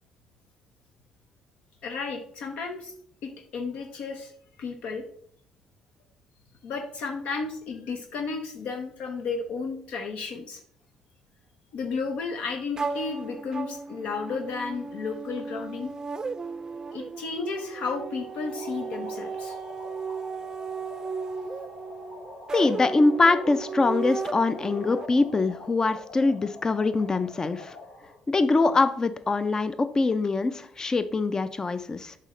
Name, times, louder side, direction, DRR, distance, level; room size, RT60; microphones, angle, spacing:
voice 1, 1.8-2.9 3.2-4.3 4.6-5.1 6.6-10.6 11.7-15.9 16.9-19.6, left 4 dB, 70° left, 4 dB, 0.8 m, -33 dB
sound 1, 12.8-25.1, right 4 dB, 30° right, 0.5 m, -35 dB
sound 2, 18.2-28.2, left 2 dB, 85° left, 2.5 m, -45 dB
voice 2, 22.5-27.8 28.3-32.1, left 3 dB, 30° left, 11 dB, 0.5 m, -23 dB
7.4 x 5.5 x 3.2 m, 0.62 s
hypercardioid pair, 55°, 2 cm